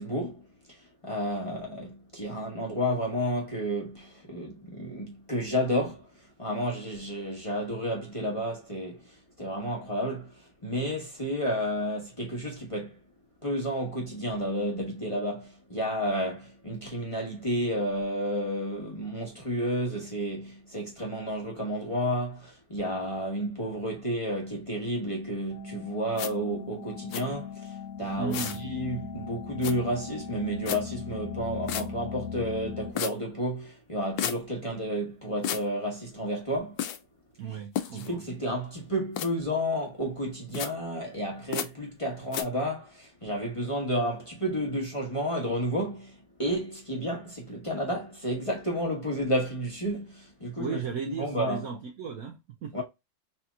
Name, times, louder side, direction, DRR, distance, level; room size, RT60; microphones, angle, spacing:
voice 1, 0.0-13.0 13.4-36.8 37.9-51.7 52.7-52.8, equal, 20° left, 1.0 m, -31 dB
sound 1, 25.5-32.9, left 6 dB, 65° left, 0.9 m, -39 dB
sound 2, 26.2-26.3 27.1-27.2 28.3-28.6 29.6-29.7 30.7-30.8 31.7-31.8 33.0-33.1 34.2-34.4 35.4-35.6 36.8-37.0 37.8-38.1 39.2-39.3 40.5-40.7 41.5-41.7 42.3-42.4, left 10 dB, 90° left, 1.3 m, -31 dB
voice 2, 28.1-28.6 37.4-38.2 50.6-52.8, right 6 dB, 65° right, 0.9 m, -35 dB
4.2 x 2.8 x 2.2 m
omnidirectional pair, 2.0 m